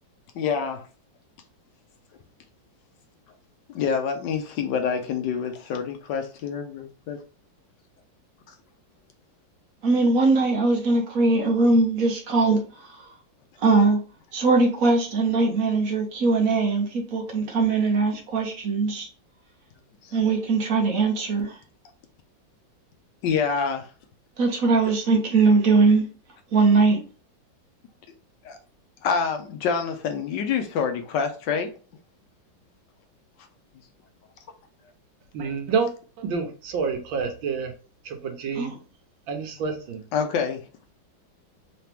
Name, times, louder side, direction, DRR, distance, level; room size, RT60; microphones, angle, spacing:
voice 1, 0.3-0.9 3.7-7.2 20.0-20.2 23.2-23.9 28.4-28.6 29.0-31.7 40.1-40.6, left 6 dB, 70° left, 1.2 m, -26 dB
voice 2, 9.8-12.9 13.6-14.0 14.3-19.1 20.1-21.6 24.4-26.1 26.5-27.0 38.6-38.8, right 3 dB, 55° right, 1.1 m, -21 dB
voice 3, 35.3-35.9 36.2-37.7 38.0-38.7 39.3-40.0, right 5 dB, 85° right, 1.6 m, -28 dB
3.9 x 2.9 x 3.4 m
omnidirectional pair, 2.1 m